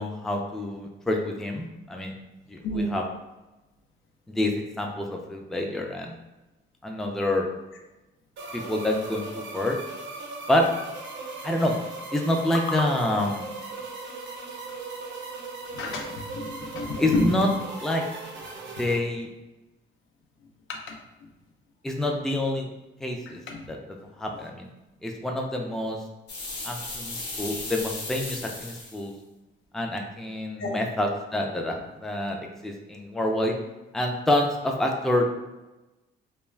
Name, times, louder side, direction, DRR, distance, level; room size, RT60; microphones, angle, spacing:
voice 1, 0.0-2.1 2.5-3.0 4.3-6.2 6.8-7.5 8.5-9.8 10.5-10.7 11.4-11.7 12.1-13.5 17.0-17.5 17.8-18.0 18.8-19.3 21.8-22.7 23.0-23.4 23.7-23.8 24.2-24.7 25.0-26.0 26.6-29.1 29.7-33.5 33.9-35.3, left 1 dB, ahead, 1 dB, 0.3 m, -27 dB
voice 2, 2.6-3.0 15.7-17.5 18.8-18.9 20.7-21.0 23.5-23.7 30.6-30.8, left 2 dB, 80° left, 1 dB, 0.6 m, -30 dB
sound 1, 8.4-19.0, right 3 dB, 70° right, 0.7 m, -38 dB
sound 2, 26.3-29.0, left 2 dB, 60° left, 0.9 m, -36 dB
2.3 x 2.2 x 3.1 m, 1.0 s
cardioid pair, 90°, 20 cm